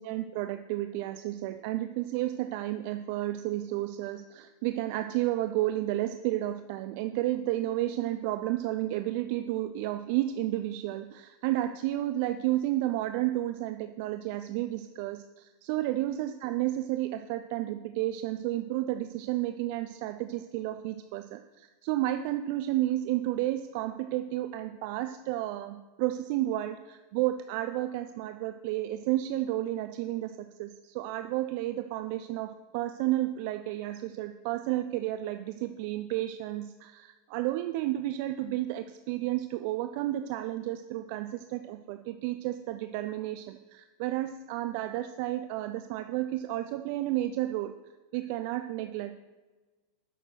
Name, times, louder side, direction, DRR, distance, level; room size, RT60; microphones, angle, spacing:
voice 1, 0.0-47.8 48.1-49.2, right 15 dB, 50° right, 8 dB, 0.5 m, -32 dB
9.9 x 6.7 x 6.0 m, 1.3 s
figure-of-eight pair, 90°, 0 cm